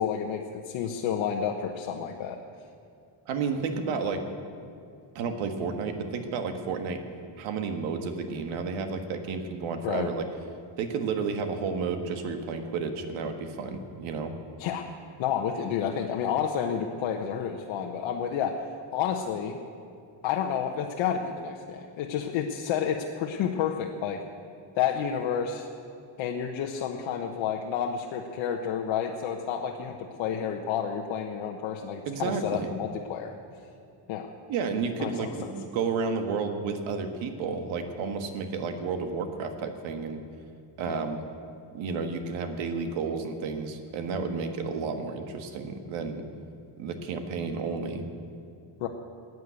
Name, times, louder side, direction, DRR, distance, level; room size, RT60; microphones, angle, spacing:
voice 1, 0.0-2.4 9.8-10.1 14.6-14.8 15.2-18.6 18.9-19.6 20.2-24.2 24.7-25.7 26.2-33.3 34.1-34.3 35.0-35.3 40.9-41.0 48.8-48.9, left 8 dB, 80° left, 1 dB, 1.1 m, -30 dB
voice 2, 3.3-4.4 5.1-7.0 7.4-10.3 10.8-14.3 32.0-32.7 34.5-40.2 40.8-41.2 41.7-46.2 46.8-48.1, right 5 dB, 90° right, 7 dB, 1.7 m, -31 dB
16.0 x 9.4 x 8.2 m, 2.5 s
cardioid pair, 175°, 46 cm